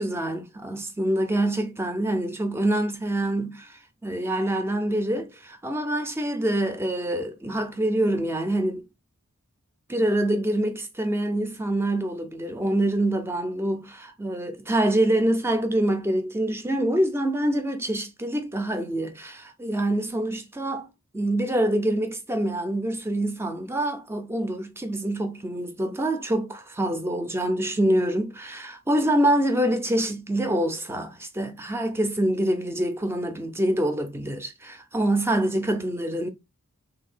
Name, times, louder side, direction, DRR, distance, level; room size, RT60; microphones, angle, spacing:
voice 1, 0.0-8.8 9.9-20.9 21.1-36.3, right 1 dB, 10° right, 0.5 m, -25 dB
3.2 x 2.7 x 4.3 m
head